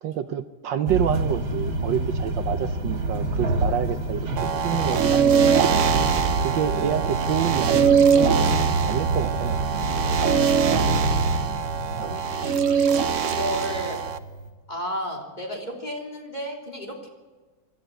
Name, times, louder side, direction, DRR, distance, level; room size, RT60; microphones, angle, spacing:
voice 1, 0.0-5.7 6.4-9.6 12.0-12.2, right 9 dB, 70° right, 10 dB, 1.4 m, -28 dB
sound 1, 0.9-14.5, right 2 dB, 85° right, 3.2 m, -27 dB
sound 2, 4.4-14.2, right 7 dB, 50° right, 1.0 m, -22 dB
voice 2, 6.0-6.6 10.1-10.8 12.0-14.1 14.7-17.1, equal, 20° left, 1 dB, 3.5 m, -34 dB
26.0 x 13.0 x 8.1 m, 1.3 s
omnidirectional pair, 2.2 m